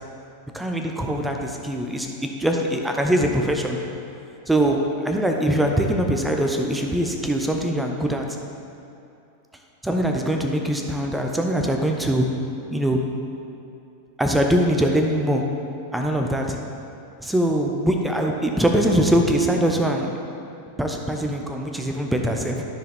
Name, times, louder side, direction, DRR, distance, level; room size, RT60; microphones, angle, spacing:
voice 1, 0.5-3.8 4.5-8.2 9.8-12.3 12.7-13.0 14.2-15.4 15.9-16.6 17.2-20.1 20.8-22.7, right 1 dB, 5° right, 2 dB, 0.7 m, -22 dB
13.0 x 4.7 x 3.7 m, 2.7 s
figure-of-eight pair, 90°, 0 cm